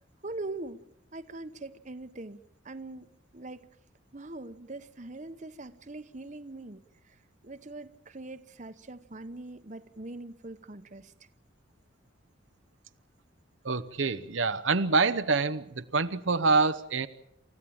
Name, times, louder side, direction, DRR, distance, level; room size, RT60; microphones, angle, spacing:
voice 1, 0.2-0.8 1.1-2.4 2.6-3.7 4.1-11.1, right 2 dB, 35° right, 11 dB, 1.0 m, -42 dB
voice 2, 13.6-17.1, right 4 dB, 65° right, 9 dB, 0.8 m, -26 dB
29.0 x 14.5 x 8.7 m, 0.77 s
head